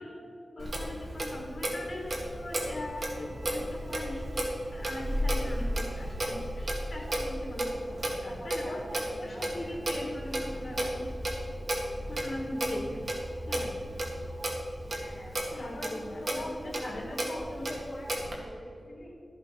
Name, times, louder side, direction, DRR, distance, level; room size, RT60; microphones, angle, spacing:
voice 1, 0.0-11.1 11.7-13.7 15.5-17.7, left 1 dB, 55° left, 0 dB, 1.9 m, -41 dB
Clock, 0.6-18.4, right 1 dB, 55° right, 2.2 m, -34 dB
sound 1, 2.5-14.5, equal, 25° right, 3.2 m, -45 dB
voice 2, 8.2-9.7 14.9-19.1, left 1 dB, 35° left, -4 dB, 3.2 m, -44 dB
13.0 x 6.7 x 5.9 m, 2.4 s
wide cardioid pair, 95°, 0 cm